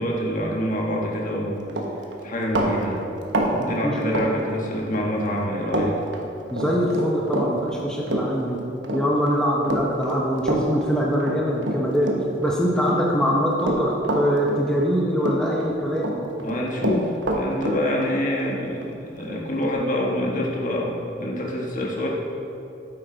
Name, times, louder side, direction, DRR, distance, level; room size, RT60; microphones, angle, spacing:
voice 1, 0.0-1.6 2.2-3.0 3.3-6.0 16.4-22.1, left 1 dB, 45° left, -2 dB, 1.4 m, -26 dB
Run, 1.2-1.4 1.7-5.0 5.3-5.9 6.1-12.5 12.8-14.9 15.2-16.1 16.4-19.7, right 1 dB, 80° right, 1.1 m, -27 dB
voice 2, 3.5-4.5 6.5-8.6 8.9-12.1 12.4-16.3, equal, 5° left, -3 dB, 0.8 m, -23 dB
9.1 x 8.5 x 3.9 m, 2.8 s
head